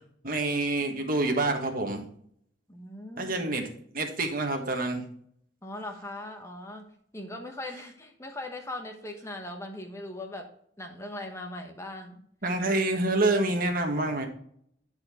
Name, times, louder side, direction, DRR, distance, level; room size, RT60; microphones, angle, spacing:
voice 1, 0.2-2.1 3.2-3.7 3.9-5.0 12.4-14.3, right 2 dB, 50° right, 3 dB, 1.4 m, -27 dB
voice 2, 2.7-3.4 5.6-10.5 10.8-12.2, left 1 dB, 15° left, 3 dB, 1.2 m, -40 dB
10.5 x 4.5 x 4.3 m, 0.65 s
head